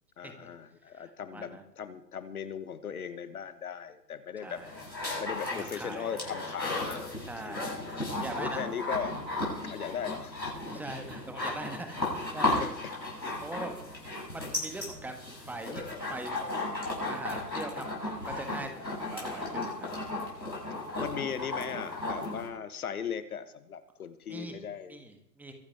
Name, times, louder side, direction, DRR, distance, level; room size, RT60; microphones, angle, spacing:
voice 1, 0.2-4.6 5.2-7.7 8.3-9.1 9.7-10.8 12.6-12.9 13.2-13.3 21.0-25.0, left 7 dB, 60° left, 12 dB, 1.3 m, -38 dB
voice 2, 0.9-1.6 4.4-4.7 5.5-6.2 7.2-7.7 8.1-8.6 10.6-12.8 13.4-13.8 14.3-18.7 18.9-19.9 24.3-24.6 24.9-25.5, right 2 dB, 5° right, 6 dB, 1.4 m, -42 dB
sound 1, 4.4-22.5, left 2 dB, 85° left, 7.2 m, -35 dB
23.5 x 10.5 x 3.5 m, 0.76 s
figure-of-eight pair, 120°, 50 cm